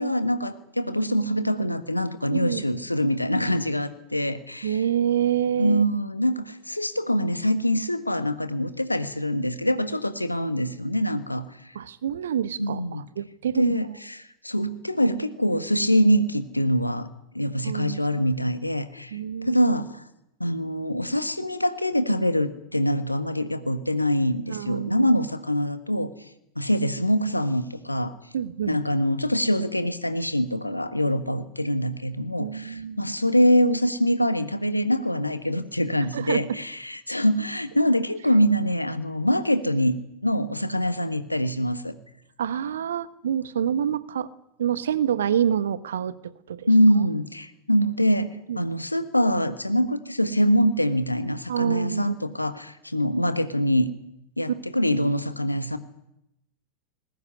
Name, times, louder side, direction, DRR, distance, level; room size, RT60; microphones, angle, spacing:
voice 1, 0.0-4.8 5.6-11.8 12.6-13.1 13.5-17.1 17.3-20.0 20.4-26.1 26.5-28.1 28.7-41.9 46.7-53.9 54.4-55.8, equal, 85° left, 10 dB, 1.5 m, -24 dB
voice 2, 2.3-2.7 4.6-5.9 11.7-13.8 17.6-18.2 19.1-19.6 24.5-25.1 28.3-28.8 32.4-33.0 36.1-36.4 42.4-44.3 44.6-46.1 46.5-46.7 48.5-48.7 51.5-52.1, right 9 dB, 65° right, 15 dB, 1.2 m, -27 dB
20.5 x 19.0 x 9.7 m, 0.82 s
figure-of-eight pair, 90°, 0 cm